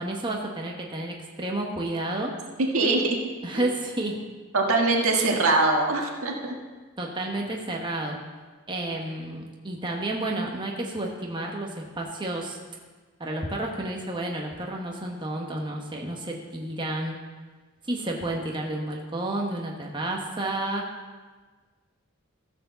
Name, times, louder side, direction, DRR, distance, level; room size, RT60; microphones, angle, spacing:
voice 1, 0.0-2.3 3.4-4.2 7.0-8.2 8.7-12.6 13.2-17.2 17.9-20.9, right 1 dB, 20° right, 0 dB, 1.1 m, -31 dB
voice 2, 2.6-3.0 3.5-3.7 4.5-6.5, right 2 dB, 80° right, 0 dB, 1.6 m, -22 dB
14.5 x 4.9 x 6.8 m, 1.4 s
head